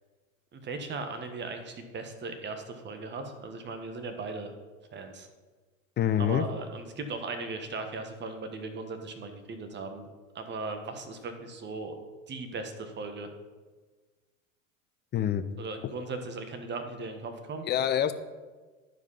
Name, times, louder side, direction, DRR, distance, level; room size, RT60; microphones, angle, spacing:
voice 1, 0.5-4.5 4.9-5.3 6.2-10.1 10.3-11.9 12.3-13.3 15.6-17.6, right 3 dB, 25° right, 7 dB, 1.3 m, -38 dB
voice 2, 6.0-6.4 15.1-15.4 17.6-18.1, left 10 dB, 25° left, 11 dB, 0.6 m, -26 dB
11.0 x 4.9 x 5.5 m, 1.3 s
hypercardioid pair, 85°, 39 cm